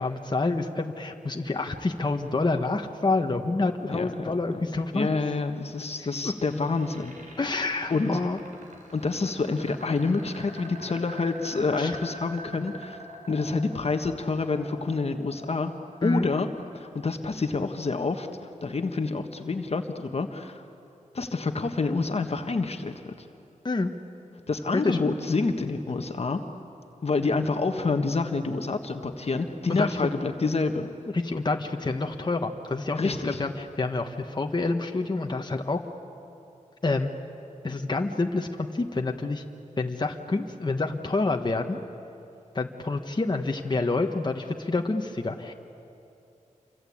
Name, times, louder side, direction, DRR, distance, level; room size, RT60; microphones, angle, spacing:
voice 1, 0.0-5.1 6.0-6.1 7.4-8.4 11.8-12.0 12.6-12.7 16.0-16.3 23.6-23.9 24.7-25.0 29.7-30.0 31.1-35.8 36.8-37.1 37.6-39.4 39.8-41.8 42.5-45.5, left 3 dB, 35° left, 4 dB, 1.4 m, -28 dB
voice 2, 3.9-4.6 4.9-7.1 7.9-8.1 8.9-13.0 13.3-15.7 16.0-16.5 16.7-20.6 21.1-23.1 24.5-26.4 27.0-30.9 33.0-33.4, left 3 dB, 50° left, 6 dB, 1.5 m, -28 dB
sound 1, 5.8-17.8, right 2 dB, 75° right, 5.2 m, -46 dB
28.0 x 24.5 x 8.7 m, 2.7 s
wide cardioid pair, 95°, 13 cm